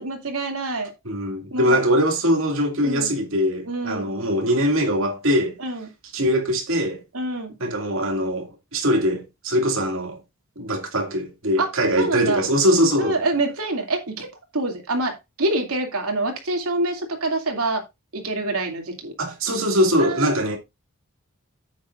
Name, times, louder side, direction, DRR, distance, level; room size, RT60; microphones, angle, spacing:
voice 1, 0.0-0.9 1.5-1.8 2.8-3.1 3.7-4.1 5.6-5.9 7.1-7.5 11.6-11.7 12.0-12.5 13.0-17.8 18.1-19.1 20.0-20.4, right 2 dB, 80° right, 2.7 m, -26 dB
voice 2, 1.0-5.6 6.1-7.0 7.6-10.2 10.6-13.2 19.2-20.6, equal, 65° right, 2.4 m, -22 dB
10.0 x 8.6 x 2.6 m
head